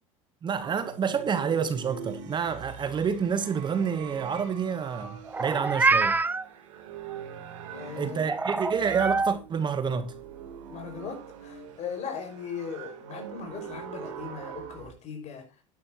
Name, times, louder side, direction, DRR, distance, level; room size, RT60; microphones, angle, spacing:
voice 1, 0.4-6.2 7.9-10.1, right 6 dB, 30° right, 1.1 m, -28 dB
sound 1, 0.6-14.9, right 8 dB, 80° right, 3.2 m, -43 dB
Meow, 5.3-6.4 8.3-9.4, right 3 dB, 10° right, 0.5 m, -25 dB
voice 2, 7.7-8.4 10.7-15.5, left 6 dB, 45° left, 5.6 m, -38 dB
11.5 x 10.5 x 2.9 m
supercardioid pair, 110°, 16 cm